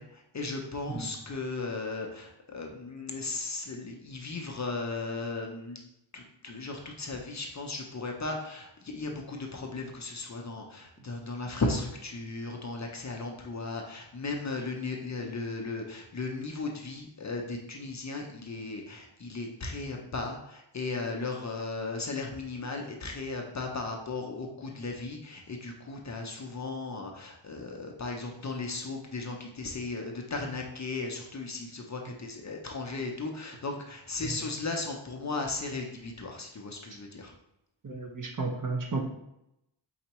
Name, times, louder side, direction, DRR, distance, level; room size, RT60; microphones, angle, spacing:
voice 1, 0.0-5.8 6.1-37.3, left 3 dB, 35° left, 1 dB, 0.5 m, -36 dB
voice 2, 37.8-39.0, right 3 dB, 40° right, 2 dB, 0.6 m, -33 dB
4.4 x 4.0 x 2.9 m, 0.83 s
wide cardioid pair, 170°, 49 cm